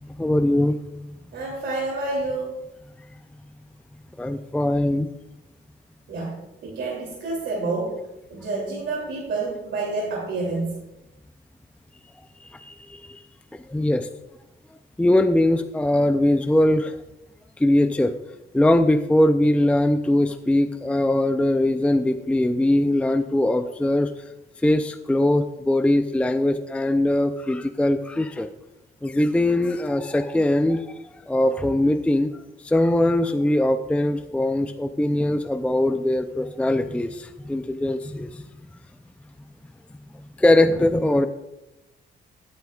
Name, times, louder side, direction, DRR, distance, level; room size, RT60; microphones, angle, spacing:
voice 1, 0.2-0.8 4.2-5.1 12.5-13.2 13.7-14.1 15.0-17.0 17.6-18.1 18.5-24.1 24.6-28.5 29.0-31.0 31.3-32.3 32.6-38.4 40.4-41.3, left 1 dB, 5° left, 8 dB, 0.4 m, -21 dB
voice 2, 1.3-2.6 6.1-10.8, right 3 dB, 65° right, -3 dB, 2.9 m, -29 dB
13.5 x 9.4 x 2.4 m, 0.95 s
cardioid pair, 90°, 20 cm